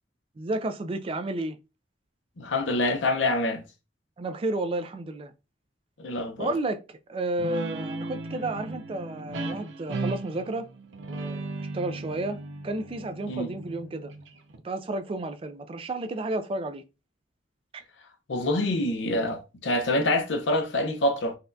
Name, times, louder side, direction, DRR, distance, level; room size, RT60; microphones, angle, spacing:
voice 1, 0.4-1.6 4.2-5.3 6.4-10.7 11.1-14.1 14.6-16.8, right 2 dB, 30° right, 0.3 m, -32 dB
voice 2, 2.4-3.6 6.0-6.5 13.2-13.5 18.3-21.4, left 1 dB, 85° left, 0.7 m, -26 dB
Guitar, 7.4-14.6, right 2 dB, 85° right, 0.6 m, -36 dB
4.1 x 2.3 x 2.6 m
head